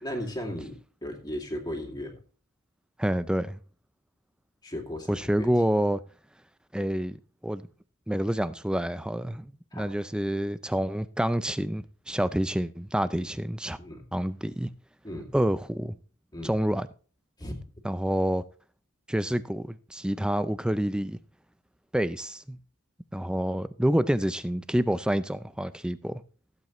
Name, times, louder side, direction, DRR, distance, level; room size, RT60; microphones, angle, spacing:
voice 1, 0.0-2.2 4.6-5.5 9.7-9.8 13.1-13.3 13.8-14.0 15.0-15.3 16.3-16.5 17.4-17.6, left 1 dB, 20° left, 2.4 m, -36 dB
voice 2, 3.0-3.6 5.1-6.0 6.7-7.7 8.1-13.8 14.1-14.7 15.3-16.0 16.4-16.9 17.8-18.4 19.1-21.2 21.9-22.6 23.1-26.2, equal, 5° right, 0.4 m, -28 dB
16.5 x 8.2 x 3.1 m
head